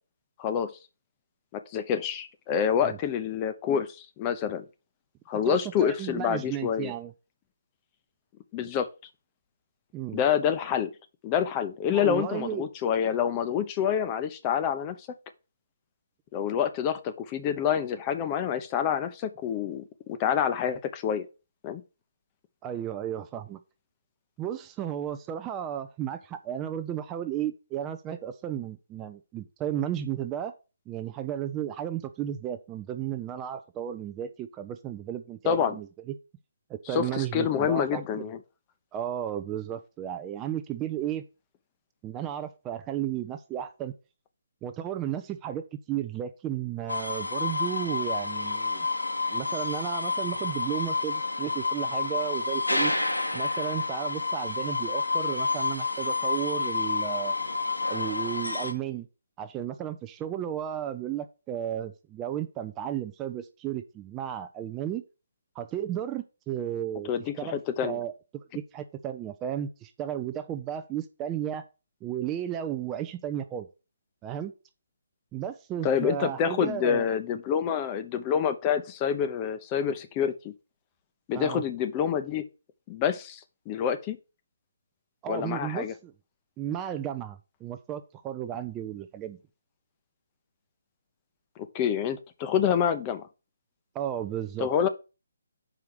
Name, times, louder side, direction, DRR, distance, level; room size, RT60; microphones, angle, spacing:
voice 1, 0.4-0.7 1.5-4.6 5.3-6.9 8.5-8.9 10.1-10.9 11.2-15.0 16.3-21.3 21.6-21.8 35.4-35.8 36.9-38.4 67.1-68.0 75.8-80.5 81.3-82.4 82.9-83.4 83.7-84.2 85.3-85.9 91.7-93.2 94.6-94.9, left 8 dB, 20° left, 0.7 m, -27 dB
voice 2, 5.5-7.1 9.9-10.2 11.9-12.6 22.6-23.6 24.4-30.5 30.9-36.1 36.7-38.3 38.9-41.2 42.0-43.9 44.6-48.9 49.3-52.9 53.3-57.4 57.9-59.1 59.4-65.0 65.6-67.1 67.4-68.1 68.5-71.6 72.0-73.7 74.2-74.5 75.3-77.1 81.3-81.6 85.2-86.1 86.6-89.4 93.9-94.7, right 10 dB, 15° right, 0.5 m, -34 dB
sound 1, 46.9-58.7, left 3 dB, 85° left, 1.5 m, -29 dB
5.7 x 4.9 x 6.5 m
figure-of-eight pair, 140°, 0 cm